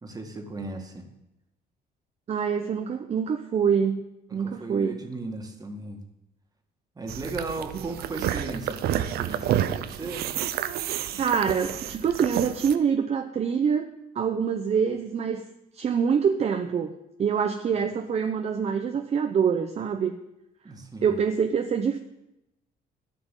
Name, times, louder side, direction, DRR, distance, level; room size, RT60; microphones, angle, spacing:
voice 1, 0.0-1.1 4.3-6.0 7.0-10.4 20.6-21.1, right 3 dB, 20° right, 4 dB, 2.0 m, -36 dB
voice 2, 2.3-4.0 4.3-5.0 7.7-7.9 11.1-13.9 14.1-15.4 15.7-16.9 17.2-20.1 21.0-22.0, right 7 dB, 40° right, 6 dB, 0.8 m, -25 dB
sound 1, 7.1-12.8, right 11 dB, 70° right, 0.7 m, -30 dB
13.0 x 6.0 x 9.1 m, 0.90 s
cardioid pair, 110°, 17 cm